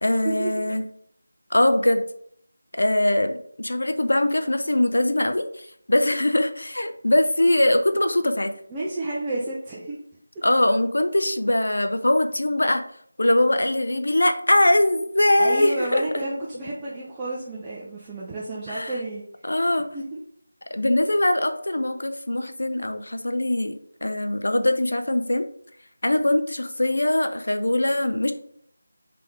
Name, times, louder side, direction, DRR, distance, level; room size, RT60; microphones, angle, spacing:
voice 1, 0.0-0.9 1.5-2.0 2.7-8.5 10.4-12.8 13.2-16.0 18.7-18.9 19.4-19.9 20.7-25.5 26.0-28.3, left 1 dB, 80° left, 7 dB, 0.5 m, -22 dB
voice 2, 8.7-10.0 15.4-19.2 19.9-20.2, right 2 dB, 10° right, -7 dB, 0.5 m, -30 dB
3.4 x 3.4 x 3.4 m, 0.64 s
figure-of-eight pair, 170°, 0 cm